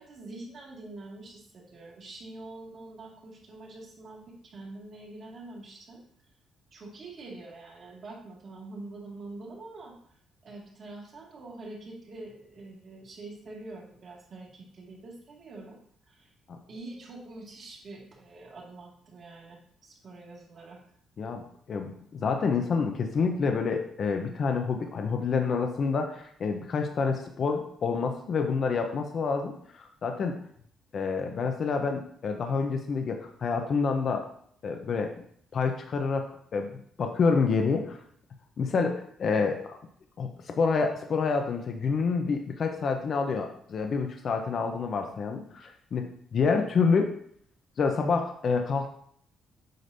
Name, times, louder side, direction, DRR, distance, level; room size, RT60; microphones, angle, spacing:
voice 1, 0.0-6.0 6.7-9.9 10.4-15.8 16.0-16.3 16.7-20.8, right 2 dB, 50° right, -2 dB, 2.0 m, -45 dB
voice 2, 21.2-30.4 30.9-34.2 34.6-35.1 35.5-36.7 37.0-38.0 38.6-39.8 40.2-47.1 47.8-48.9, left 5 dB, 55° left, 4 dB, 0.7 m, -28 dB
7.8 x 5.1 x 2.7 m, 0.63 s
cardioid pair, 90°, 0 cm